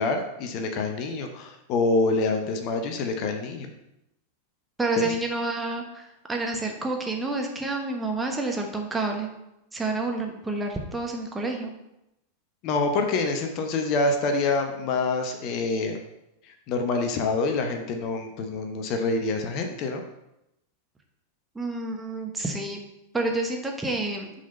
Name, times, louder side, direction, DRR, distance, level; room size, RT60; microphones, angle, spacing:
voice 1, 0.0-3.7 5.0-5.1 12.6-16.0 16.7-20.0, left 3 dB, 40° left, 5 dB, 0.9 m, -26 dB
voice 2, 4.8-9.3 9.7-11.7 21.5-22.8 23.1-24.3, right 2 dB, 10° right, 2 dB, 1.1 m, -29 dB
6.2 x 4.1 x 5.4 m, 0.87 s
figure-of-eight pair, 90°, 0 cm